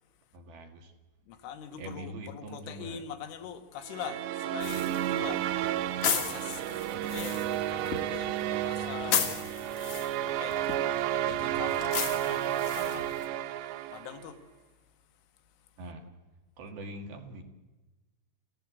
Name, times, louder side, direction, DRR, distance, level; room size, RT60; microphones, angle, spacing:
voice 1, 0.3-0.9 1.7-3.0 15.8-16.1 16.6-17.4, right 1 dB, 60° right, 3.4 m, -43 dB
voice 2, 1.2-9.5 9.8-10.8 11.1-13.2 13.9-15.8, left 9 dB, 85° left, 3.9 m, -44 dB
sound 1, 3.9-14.3, right 12 dB, 75° right, 2.9 m, -32 dB
sound 2, 4.6-13.3, left 7 dB, 55° left, 2.3 m, -36 dB
27.5 x 16.5 x 8.3 m
omnidirectional pair, 5.5 m